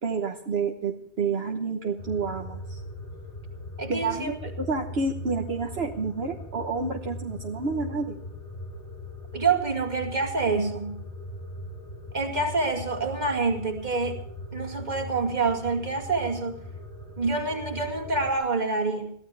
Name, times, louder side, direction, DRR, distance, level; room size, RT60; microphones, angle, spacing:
voice 1, 0.0-2.8 3.9-8.2, right 4 dB, 65° right, 3 dB, 1.5 m, -29 dB
sound 1, 2.0-18.4, left 1 dB, 55° left, 7.3 m, -40 dB
voice 2, 3.8-4.5 9.3-11.0 12.1-14.2 14.5-16.6 17.2-19.1, right 3 dB, 40° right, 3 dB, 2.3 m, -27 dB
22.0 x 15.5 x 3.4 m, 0.66 s
omnidirectional pair, 1.1 m